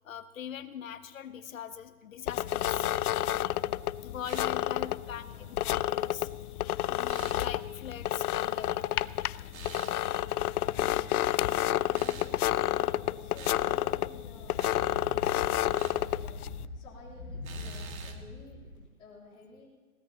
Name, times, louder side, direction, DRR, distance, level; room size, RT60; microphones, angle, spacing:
voice 1, 0.0-2.9 4.0-5.2 5.5-6.3 6.6-9.1, left 9 dB, 65° left, 11 dB, 1.1 m, -42 dB
sound 1, 2.3-16.6, left 13 dB, 90° left, 0.5 m, -30 dB
sound 2, 4.2-4.6 7.1-7.4 9.5-10.0 11.9-12.3 13.3-13.6 14.6-14.8 15.7-16.0 17.4-18.2, right 6 dB, 70° right, 1.9 m, -47 dB
voice 2, 5.1-5.6 10.8-11.1 11.4-19.7, left 4 dB, 10° left, -8 dB, 3.4 m, -53 dB
sound 3, 14.1-18.8, left 1 dB, 10° right, 4.7 m, -44 dB
22.0 x 17.0 x 2.9 m, 1.5 s
hypercardioid pair, 175°, 43 cm